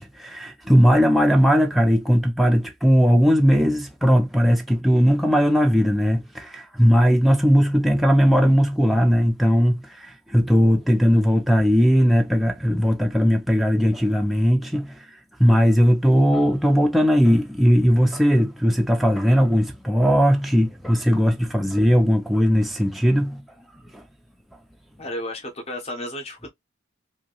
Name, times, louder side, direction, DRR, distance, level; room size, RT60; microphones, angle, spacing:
voice 1, 0.0-15.1 15.4-23.4 23.9-24.0, equal, ahead, 0.3 m, -18 dB
voice 2, 25.0-26.5, left 1 dB, 30° left, 0.7 m, -32 dB
2.7 x 2.6 x 2.8 m
head